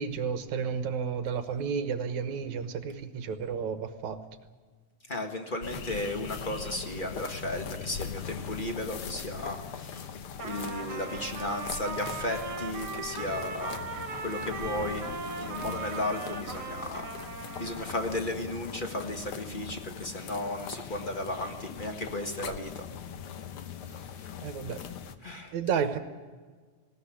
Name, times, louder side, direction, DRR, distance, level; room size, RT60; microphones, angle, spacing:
voice 1, 0.0-4.2 22.4-22.5 24.4-24.8 25.5-26.0, right 6 dB, 70° right, 9 dB, 2.5 m, -32 dB
voice 2, 5.1-10.1 10.4-13.8 14.2-15.0 15.4-17.1 17.6-22.8 24.0-24.2 25.2-25.6, left 1 dB, 30° left, 4 dB, 0.9 m, -35 dB
sound 1, 5.6-25.2, left 7 dB, 60° left, 1.6 m, -41 dB
Trumpet, 10.3-18.2, right 4 dB, 45° right, 2.8 m, -39 dB
19.5 x 17.5 x 10.0 m, 1.5 s
omnidirectional pair, 3.5 m